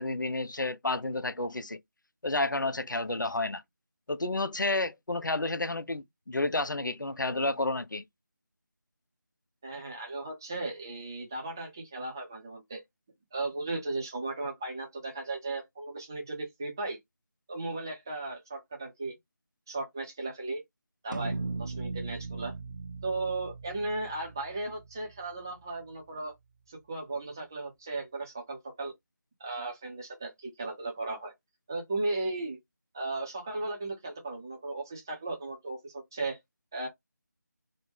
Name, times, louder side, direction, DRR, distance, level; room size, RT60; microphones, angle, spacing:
voice 1, 0.0-1.8 2.2-3.6 4.1-8.0, left 2 dB, 85° left, 0.5 m, -30 dB
voice 2, 9.6-12.8 13.3-17.0 17.5-19.1 19.7-20.6 21.0-22.5 23.0-26.3 26.7-28.9 29.4-31.3 31.7-32.6 32.9-36.4 36.7-36.9, right 2 dB, 10° right, 0.5 m, -36 dB
sound 1, 21.1-25.7, right 3 dB, 80° right, 0.6 m, -39 dB
3.1 x 2.1 x 3.4 m
figure-of-eight pair, 165°, 10 cm